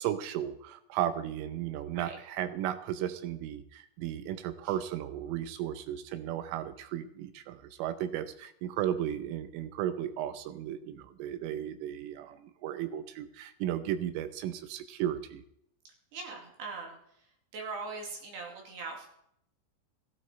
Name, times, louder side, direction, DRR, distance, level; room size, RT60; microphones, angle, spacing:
voice 1, 0.0-15.4, right 11 dB, 80° right, 11 dB, 3.2 m, -35 dB
voice 2, 16.1-17.0 17.5-19.1, right 4 dB, 60° right, 1 dB, 4.2 m, -40 dB
14.5 x 13.5 x 4.4 m, 0.71 s
omnidirectional pair, 6.0 m